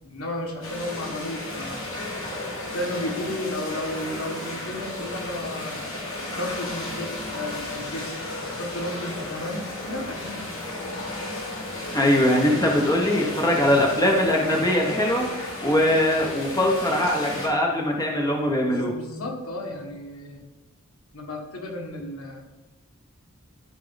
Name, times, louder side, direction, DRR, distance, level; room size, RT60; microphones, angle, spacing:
voice 1, 0.0-1.9 2.7-5.9 6.3-10.4 18.6-20.4 21.1-22.4, left 1 dB, 85° left, 1 dB, 1.6 m, -33 dB
sound 1, 0.6-17.5, left 2 dB, 65° left, 3.0 m, -34 dB
voice 2, 11.9-15.3 15.6-18.9, left 1 dB, 15° left, 0 dB, 1.1 m, -21 dB
13.0 x 4.8 x 4.0 m, 1.1 s
head